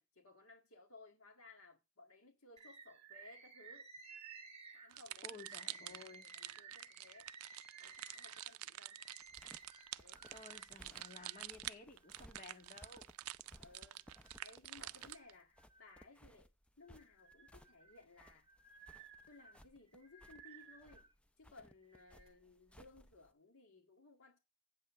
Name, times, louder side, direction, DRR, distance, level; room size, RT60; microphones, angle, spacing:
voice 1, 0.0-3.9 4.7-5.4 5.8-7.3 7.8-9.0 10.0-10.5 13.6-14.0 14.4-16.5 16.8-18.5 19.3-21.1 21.4-24.4, left 3 dB, 65° left, 2.0 m, -61 dB
Bird, 2.6-11.5 12.0-13.0 13.5-14.5 15.0-16.4 16.8-21.1 21.8-22.3, right 5 dB, 30° right, 2.3 m, -58 dB
sound 1, 4.9-15.3, right 15 dB, 75° right, 0.4 m, -48 dB
voice 2, 5.2-6.3 10.3-13.1, left 3 dB, 35° left, 2.0 m, -55 dB
sound 2, 9.2-23.3, equal, 5° left, 0.5 m, -63 dB
8.3 x 5.7 x 6.3 m
head